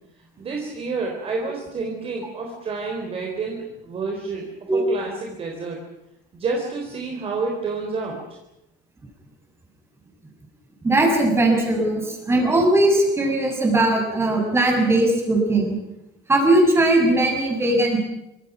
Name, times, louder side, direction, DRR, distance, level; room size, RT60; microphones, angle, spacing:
voice 1, 0.4-4.4 4.7-5.8 6.3-8.4, right 4 dB, 30° right, 1 dB, 3.8 m, -29 dB
voice 2, 10.8-15.7 16.3-18.0, right 1 dB, 10° right, 1 dB, 6.8 m, -19 dB
26.5 x 25.0 x 6.1 m, 0.89 s
cardioid pair, 180°, 20 cm